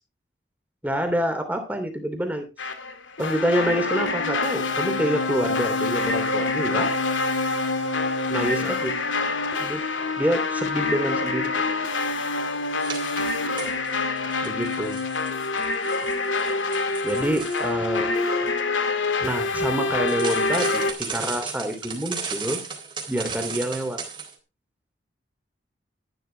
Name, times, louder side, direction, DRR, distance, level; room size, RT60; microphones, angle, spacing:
voice 1, 0.8-2.5 3.2-6.9 8.3-8.9 9.6-9.8 10.2-11.5 14.4-15.0 17.0-18.2 19.2-22.6 23.1-24.0, equal, 10° right, 6 dB, 3.1 m, -27 dB
sound 1, 2.6-20.9, left 3 dB, 85° left, 2.3 m, -26 dB
sound 2, 12.8-14.0 14.3-17.7 20.1-24.3, right 5 dB, 25° right, 3.6 m, -35 dB
13.0 x 12.0 x 3.5 m, 0.28 s
head